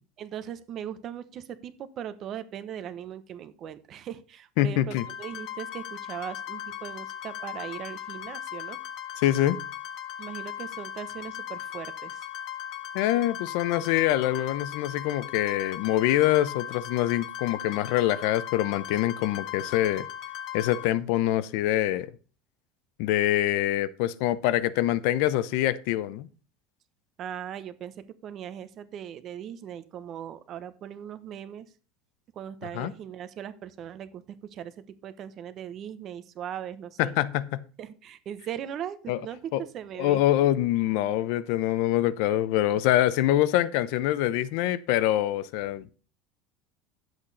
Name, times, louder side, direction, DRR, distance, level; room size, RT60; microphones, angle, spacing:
voice 1, 0.2-8.8 10.2-12.3 27.2-31.7 32.3-37.1 37.8-39.4 39.7-40.2, right 9 dB, 35° right, 1.0 m, -39 dB
voice 2, 4.6-5.0 9.2-9.6 12.9-20.1 20.5-22.1 23.0-26.3 32.7-32.9 37.0-37.6 39.1-39.2 39.5-39.6 40.0-45.9, left 13 dB, 65° left, 0.8 m, -25 dB
sound 1, 5.0-20.8, left 11 dB, 45° left, 1.5 m, -38 dB
10.5 x 7.9 x 4.1 m
cardioid pair, 155°, 0 cm